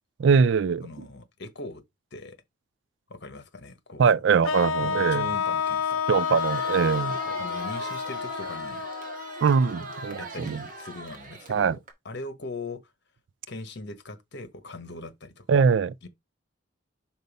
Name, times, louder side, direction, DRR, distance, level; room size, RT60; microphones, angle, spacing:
voice 1, 0.2-1.1 4.0-5.3 6.1-7.2 9.4-10.6 11.5-11.8 15.5-16.0, right 6 dB, 60° right, 0.3 m, -22 dB
voice 2, 0.8-1.8 2.1-2.4 3.1-4.1 4.8-6.0 7.2-8.9 10.2-11.8 12.0-12.8 13.5-15.6 16.0-16.1, left 2 dB, 55° left, 1.3 m, -40 dB
sound 1, 4.4-10.5, left 6 dB, 80° left, 0.7 m, -30 dB
Crowd, 5.9-11.9, right 3 dB, 40° right, 1.7 m, -40 dB
5.4 x 4.5 x 5.2 m
head